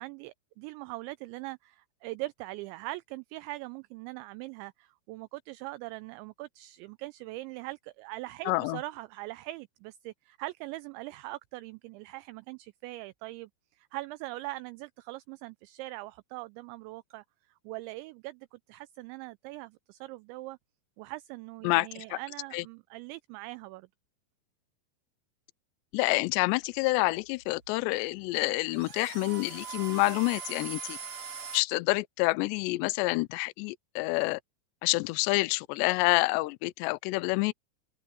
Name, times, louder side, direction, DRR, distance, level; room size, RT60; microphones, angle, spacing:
voice 1, 0.0-17.2 17.6-20.6 21.0-23.9, right 20 dB, 85° right, 2.6 m, -41 dB
voice 2, 8.5-8.8 21.6-22.2 22.5-22.6 25.9-31.0 31.5-34.4 34.8-37.5, left 24 dB, 85° left, 2.5 m, -28 dB
sound 1, 26.7-31.6, right 6 dB, 35° right, 3.1 m, -42 dB
omnidirectional pair, 5.6 m